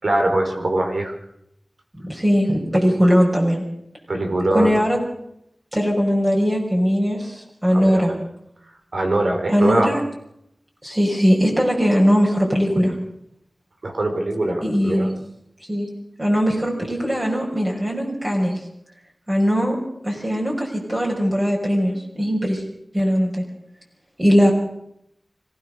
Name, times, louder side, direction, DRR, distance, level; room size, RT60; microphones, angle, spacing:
voice 1, 0.0-1.1 4.1-4.8 7.7-8.0 8.9-9.9 13.8-15.1, right 1 dB, 75° right, 3 dB, 4.7 m, -22 dB
voice 2, 2.0-3.6 4.5-5.0 5.7-8.1 9.5-10.0 10.8-13.0 14.6-15.1 15.7-15.9 16.2-18.6 19.3-19.8 20.0-22.6 22.9-23.4 24.2-24.5, equal, 25° right, -2 dB, 5.9 m, -20 dB
26.0 x 15.5 x 6.7 m, 0.78 s
wide cardioid pair, 50°, 0 cm